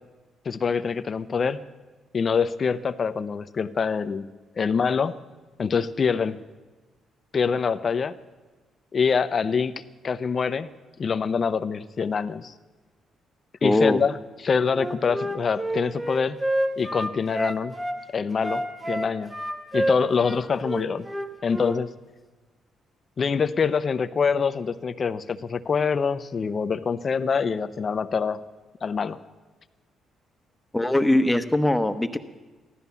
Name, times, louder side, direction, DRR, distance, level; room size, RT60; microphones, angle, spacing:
voice 1, 0.4-1.6 2.1-4.3 4.6-5.2 5.6-6.4 7.3-8.1 8.9-9.7 10.0-10.7 11.0-12.5 13.6-16.4 16.8-17.8 18.1-19.3 19.7-21.1 21.4-21.9 23.2-28.4 28.8-29.2, left 5 dB, 45° left, 13 dB, 0.7 m, -25 dB
voice 2, 13.6-14.0 30.7-32.2, left 1 dB, 10° left, 9 dB, 1.0 m, -21 dB
Wind instrument woodwind instrument, 14.7-18.0 18.4-21.8, right 1 dB, 10° right, 1.5 m, -29 dB
15.0 x 12.5 x 7.1 m, 1.2 s
cardioid pair, 90°, 0 cm